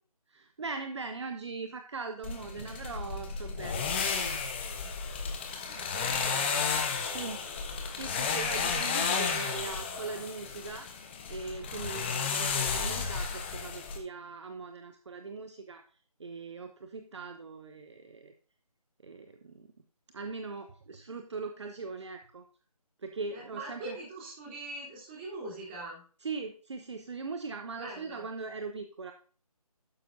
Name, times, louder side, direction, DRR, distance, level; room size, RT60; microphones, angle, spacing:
voice 1, 0.3-4.4 7.1-15.8 16.2-18.3 19.0-19.7 20.1-22.4 23.0-24.0 26.2-29.1, right 4 dB, 45° right, 7 dB, 0.9 m, -40 dB
sound 1, 2.2-14.0, left 5 dB, 15° left, 0.9 m, -33 dB
voice 2, 5.7-7.2 23.3-26.0 27.8-28.2, right 2 dB, 20° right, -4 dB, 3.6 m, -42 dB
12.0 x 9.1 x 2.7 m, 0.41 s
figure-of-eight pair, 155°, 20 cm